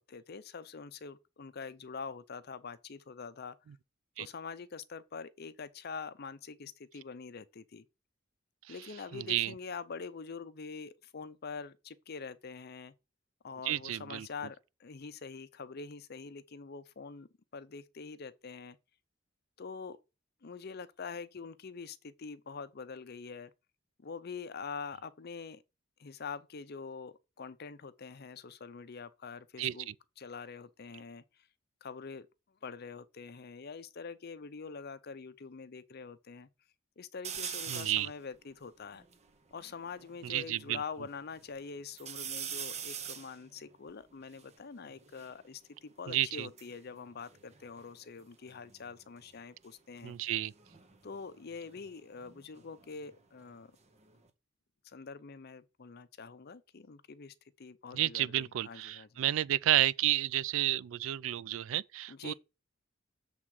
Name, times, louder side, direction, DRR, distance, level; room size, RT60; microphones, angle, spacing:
voice 1, 0.0-3.6 4.2-7.8 8.7-12.9 13.4-18.8 19.6-20.0 20.4-23.5 24.0-25.6 26.0-29.9 30.2-31.5 31.8-32.3 32.6-36.5 37.0-39.0 39.5-50.2 51.0-53.7 54.8-59.1 62.1-62.3, left 5 dB, 55° left, 0.6 m, -45 dB
voice 2, 9.1-9.5 13.6-14.3 29.6-29.9 37.7-38.1 40.2-40.8 46.1-46.5 50.0-50.5 57.9-62.3, right 13 dB, 80° right, 0.4 m, -31 dB
sound 1, 37.2-38.1 38.6-38.7 38.9-40.5 41.0-41.6 42.0-45.4 46.3-48.2 48.5-49.0 50.5-53.2 53.5-54.3, right 8 dB, 35° right, 0.8 m, -44 dB
7.2 x 3.6 x 6.3 m
head